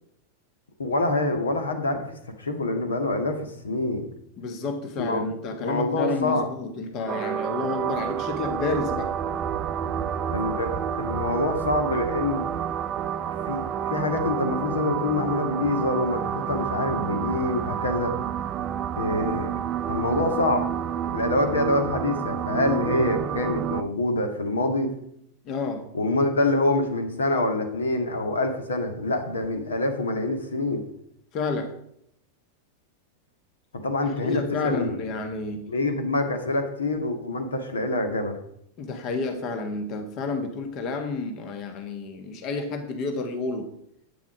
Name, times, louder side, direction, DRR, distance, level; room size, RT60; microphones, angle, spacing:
voice 1, 0.8-4.0 5.0-6.4 10.3-12.5 13.3-18.1 19.0-19.5 19.9-20.6 21.1-24.9 25.9-30.8 33.8-35.0 35.7-38.3, left 2 dB, 70° left, 6 dB, 1.8 m, -26 dB
voice 2, 4.4-9.1 25.4-25.9 31.3-31.7 34.0-35.7 38.8-43.7, left 3 dB, 35° left, 7 dB, 1.5 m, -30 dB
sound 1, 7.1-23.8, right 9 dB, 30° right, 0.5 m, -29 dB
11.5 x 8.9 x 5.0 m, 0.73 s
figure-of-eight pair, 90°, 0 cm